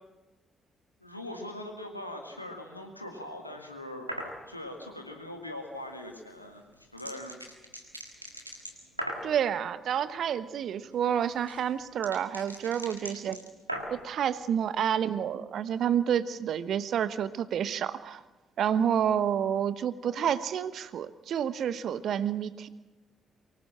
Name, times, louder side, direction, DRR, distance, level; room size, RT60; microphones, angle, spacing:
voice 1, 1.0-4.1 4.5-7.4, left 1 dB, 90° left, 3 dB, 2.0 m, -41 dB
sound 1, 4.1-4.4 6.3-9.3 10.9-14.1, right 1 dB, 90° right, 1.6 m, -39 dB
voice 2, 9.2-13.4 13.9-18.2 18.6-22.7, right 9 dB, 55° right, 14 dB, 1.0 m, -29 dB
24.0 x 19.0 x 7.6 m, 1.1 s
figure-of-eight pair, 40°, 0 cm